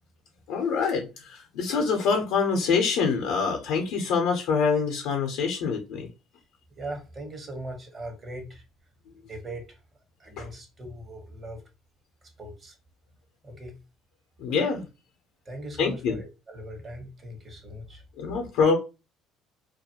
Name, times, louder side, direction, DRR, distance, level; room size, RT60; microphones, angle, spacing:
voice 1, 0.5-6.1 10.4-10.5 14.4-14.9 15.8-16.2 18.2-18.8, left 5 dB, 75° left, 0.6 m, -25 dB
voice 2, 6.8-8.6 9.3-9.7 10.2-11.6 12.4-12.7 13.4-13.8 15.5-18.0, right 1 dB, 35° right, 1.0 m, -39 dB
2.4 x 2.2 x 2.8 m
supercardioid pair, 80°, 0 cm